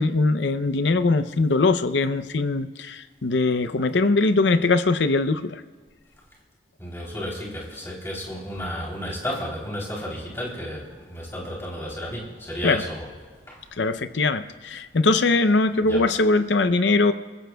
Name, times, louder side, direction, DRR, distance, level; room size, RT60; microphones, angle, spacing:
voice 1, 0.0-5.6 12.6-12.8 13.8-17.1, left 3 dB, 75° left, 11 dB, 0.6 m, -21 dB
voice 2, 6.8-13.1 13.5-13.7 15.8-16.0, equal, 15° left, -3 dB, 3.4 m, -33 dB
28.0 x 15.5 x 2.3 m, 1.5 s
head